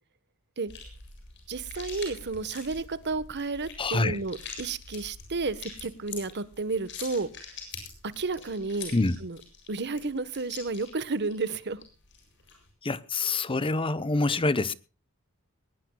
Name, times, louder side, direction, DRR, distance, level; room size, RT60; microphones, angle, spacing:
sound 1, 0.7-12.7, left 5 dB, 55° left, 7.5 m, -45 dB
voice 1, 1.5-7.3 8.0-8.9 9.2-9.4 9.7-11.8, right 3 dB, 55° right, 1.2 m, -32 dB
voice 2, 3.8-4.2 8.9-9.2 12.8-14.7, left 3 dB, 25° left, 0.8 m, -26 dB
21.5 x 19.5 x 2.3 m
head